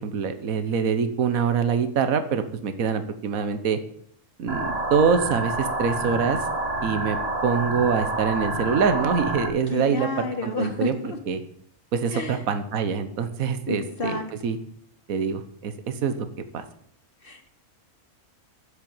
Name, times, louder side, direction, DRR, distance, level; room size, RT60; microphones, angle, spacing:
voice 1, 0.0-3.8 4.4-6.4 6.8-7.2 7.4-11.4 11.9-14.6 15.1-16.3 16.5-16.6, right 6 dB, 70° right, 10 dB, 1.5 m, -25 dB
sound 1, 4.5-9.5, right 2 dB, 40° right, 2.3 m, -28 dB
voice 2, 9.7-11.2 12.1-12.4 13.7-14.2 17.2-17.5, left 3 dB, 35° left, 3 dB, 2.2 m, -30 dB
10.5 x 8.2 x 8.8 m, 0.67 s
omnidirectional pair, 1.6 m